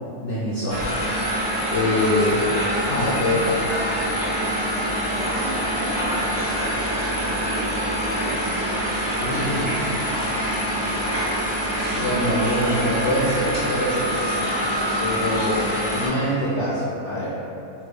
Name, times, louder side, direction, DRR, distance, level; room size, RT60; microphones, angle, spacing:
voice 1, 0.2-0.9 1.7-2.4 2.8-3.6 9.2-9.7 11.9-14.1 15.0-17.4, left 1 dB, 75° left, -9 dB, 0.6 m, -24 dB
sound 1, 0.7-16.1, equal, 20° right, 0.6 m, -25 dB
voice 2, 1.5-2.0 5.1-6.4 7.1-7.6 8.1-8.7 9.3-9.5 11.8-12.6, right 2 dB, 80° right, -3 dB, 1.2 m, -38 dB
3.4 x 2.2 x 3.2 m, 2.7 s
omnidirectional pair, 1.7 m